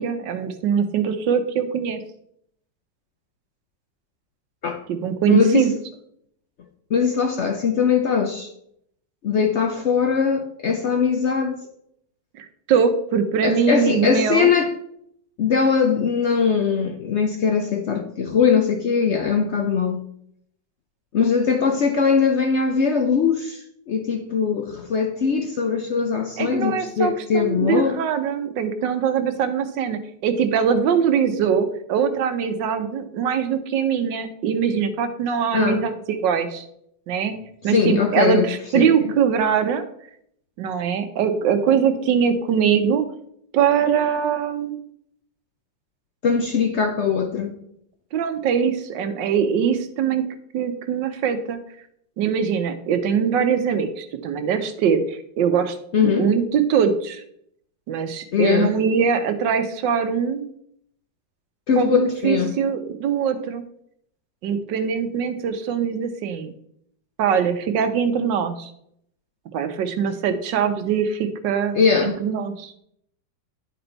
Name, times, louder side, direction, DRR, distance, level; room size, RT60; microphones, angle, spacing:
voice 1, 0.0-2.0 4.9-5.7 12.4-14.5 26.4-36.6 37.1-37.3 37.6-39.8 40.6-43.0 43.5-44.7 48.1-50.3 50.5-51.6 52.2-55.8 56.0-57.2 57.9-60.5 61.8-63.6 64.4-66.5 67.2-68.7 69.5-72.7, right 7 dB, 80° right, 1.4 m, -22 dB
voice 2, 5.3-5.7 6.9-8.5 9.2-11.6 13.4-14.7 15.4-20.0 21.1-23.6 23.9-28.0 35.5-35.9 37.7-38.5 38.7-38.9 46.2-47.5 55.9-56.3 58.3-58.8 61.7-62.5 71.7-72.2, left 6 dB, 75° left, 0.6 m, -21 dB
10.5 x 4.0 x 4.4 m
omnidirectional pair, 2.0 m